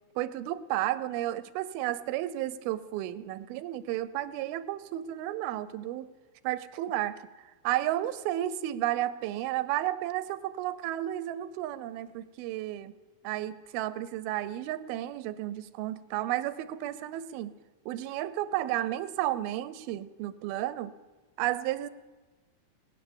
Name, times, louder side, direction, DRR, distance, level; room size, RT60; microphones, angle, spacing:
voice 1, 0.2-6.1 6.4-7.2 7.6-12.9 13.2-17.5 17.9-20.9 21.4-21.9, right 13 dB, 90° right, 15 dB, 2.6 m, -32 dB
19.0 x 9.9 x 7.2 m, 1.2 s
omnidirectional pair, 4.2 m